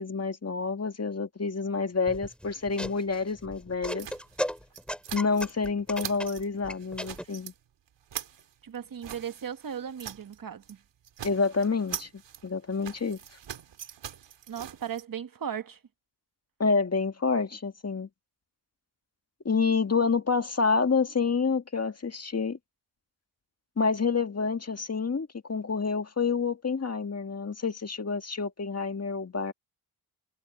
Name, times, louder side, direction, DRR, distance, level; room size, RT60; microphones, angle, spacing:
voice 1, 0.0-4.1 5.1-7.5 11.2-12.1 12.4-13.2 16.6-18.1 19.5-22.6 23.8-29.5, left 4 dB, 35° left, 1.9 m, -28 dB
sound 1, 2.1-7.2, equal, ahead, 2.8 m, -36 dB
sound 2, 4.0-5.7 5.9-6.5 6.8-7.6 7.9-10.4 10.6-10.8 11.0-15.0, right 9 dB, 90° right, 2.6 m, -42 dB
voice 2, 8.6-10.8 14.5-15.8, right 8 dB, 50° right, 1.4 m, -37 dB
cardioid pair, 65°, 42 cm